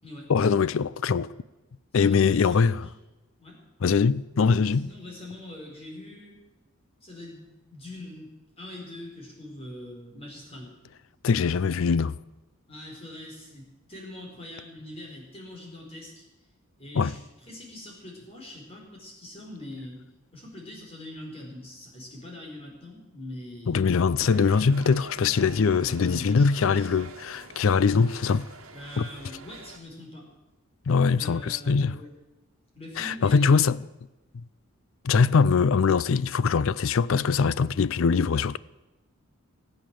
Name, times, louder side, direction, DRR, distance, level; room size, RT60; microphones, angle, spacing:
voice 1, 0.3-1.3 1.9-2.8 3.8-4.9 11.2-12.2 16.9-17.2 23.7-28.5 29.0-29.1 30.9-32.0 33.0-33.8 34.3-34.4 35.0-38.6, left 5 dB, 65° left, 0.4 m, -22 dB
voice 2, 1.9-2.8 3.4-3.6 4.7-6.4 7.0-8.3 8.6-10.7 12.7-16.3 16.8-20.0 20.3-23.9 25.8-26.9 28.7-30.3 31.1-32.1 32.7-33.5, left 1 dB, 25° left, 4.7 m, -43 dB
sound 1, 24.2-29.8, right 4 dB, 70° right, 1.7 m, -47 dB
19.5 x 8.8 x 7.6 m
head